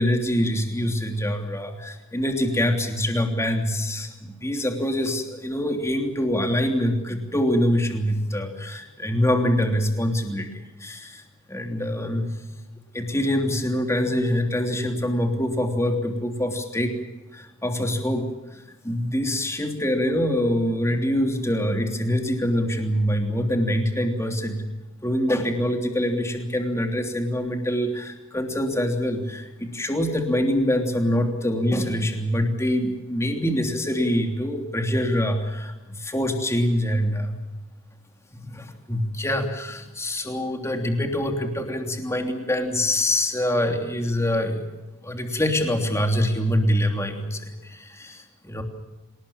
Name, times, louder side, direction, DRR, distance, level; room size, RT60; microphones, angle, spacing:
voice 1, 0.0-11.2 11.5-12.4 12.9-17.0 17.3-24.6 25.0-37.4 38.3-44.6 45.0-48.6, left 1 dB, 15° left, 4 dB, 3.1 m, -25 dB
28.0 x 19.5 x 7.2 m, 1.1 s
head